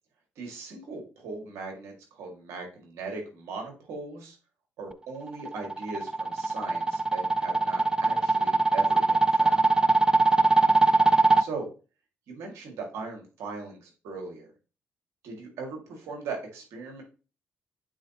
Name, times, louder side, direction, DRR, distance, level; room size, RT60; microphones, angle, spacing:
voice 1, 0.4-4.4 4.8-9.6 11.4-11.7 12.3-14.5 15.2-17.0, right 4 dB, 80° right, 1 dB, 2.1 m, -39 dB
sound 1, 5.3-11.4, right 2 dB, 15° right, 0.4 m, -22 dB
8.6 x 4.1 x 2.9 m, 0.34 s
supercardioid pair, 55°, 5 cm